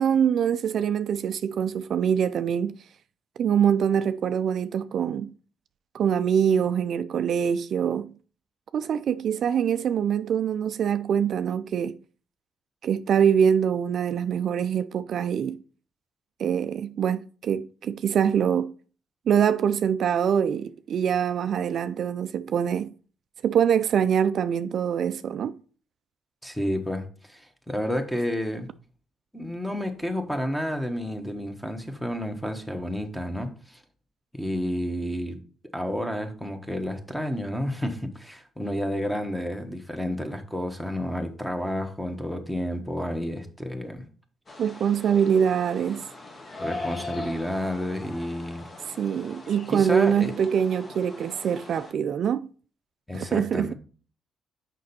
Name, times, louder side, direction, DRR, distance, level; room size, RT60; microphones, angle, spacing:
voice 1, 0.0-2.8 3.4-5.3 5.9-8.1 8.7-12.0 12.8-15.6 16.4-18.7 19.3-22.9 23.4-25.6 44.6-46.1 48.9-52.5 53.1-53.7, right 8 dB, 65° right, 0.3 m, -24 dB
voice 2, 26.4-28.7 29.3-33.8 34.3-35.4 35.7-44.0 46.6-48.6 49.7-50.3 53.1-53.7, equal, 5° left, 1.3 m, -30 dB
sound 1, 44.5-51.9, left 2 dB, 35° left, 1.4 m, -40 dB
6.3 x 5.3 x 4.1 m
cardioid pair, 90°, 0 cm